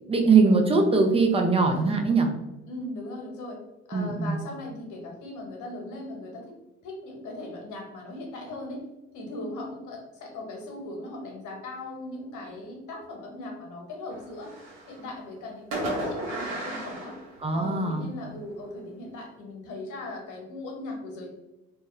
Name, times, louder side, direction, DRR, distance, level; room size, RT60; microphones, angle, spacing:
voice 1, 0.1-2.3 3.9-4.4 17.4-18.1, right 4 dB, 15° right, 3 dB, 0.5 m, -21 dB
voice 2, 1.7-2.0 2.7-3.6 3.9-6.5 6.8-8.8 9.1-14.6 14.9-17.2 17.5-21.3, left 2 dB, 55° left, 1 dB, 1.0 m, -38 dB
Fireworks, 14.1-15.1 15.7-17.9, right 1 dB, 70° right, 0.9 m, -34 dB
2.2 x 2.0 x 3.0 m, 0.99 s
hypercardioid pair, 60°, 36 cm